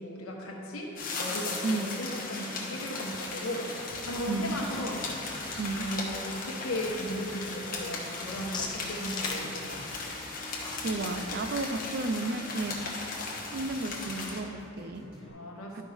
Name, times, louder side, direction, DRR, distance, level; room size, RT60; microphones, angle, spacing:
voice 1, 0.0-5.3 5.8-10.1 15.2-15.8, equal, 75° left, -1 dB, 1.2 m, -37 dB
sound 1, 1.0-14.4, left 3 dB, 40° left, 1.1 m, -37 dB
sound 2, 1.9-14.3, left 3 dB, 20° left, 0.6 m, -46 dB
sound 3, 3.9-15.3, equal, 5° right, 1.6 m, -51 dB
voice 2, 4.3-4.6 5.6-5.9 10.8-13.1 13.5-15.1 15.7-15.8, right 3 dB, 45° right, 7 dB, 0.4 m, -33 dB
11.5 x 5.2 x 3.5 m, 2.8 s
head